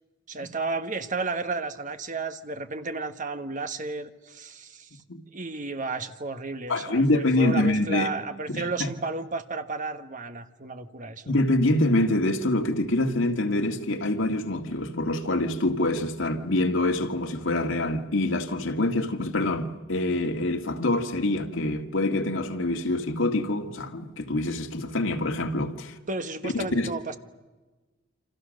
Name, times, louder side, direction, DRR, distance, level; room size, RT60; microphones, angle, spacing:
voice 1, 0.3-4.9 5.3-11.3 26.1-27.2, right 3 dB, 40° right, 1.4 m, -33 dB
voice 2, 6.7-8.1 8.5-8.9 11.3-25.9 26.4-26.9, left 2 dB, 80° left, 1.9 m, -25 dB
28.0 x 26.5 x 6.5 m
head